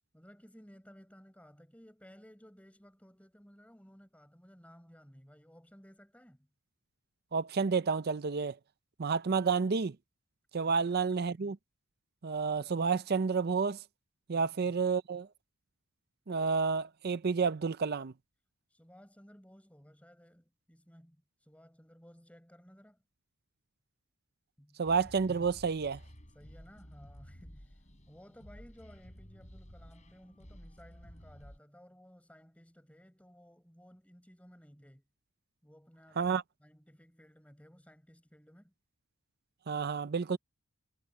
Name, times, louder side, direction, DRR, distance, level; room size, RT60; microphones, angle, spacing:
voice 1, 0.1-6.5 10.6-10.8 14.3-14.8 18.7-23.0 24.6-24.8 26.3-35.0 35.6-36.3 36.6-38.7, equal, 5° left, 6.3 m, -57 dB
voice 2, 7.3-8.6 9.0-10.0 10.5-11.6 12.2-13.8 14.3-15.3 16.3-18.1 24.8-26.0 36.2-36.4 39.7-40.4, right 5 dB, 45° right, 0.5 m, -30 dB
sound 1, 24.8-31.6, equal, 30° left, 7.5 m, -53 dB
head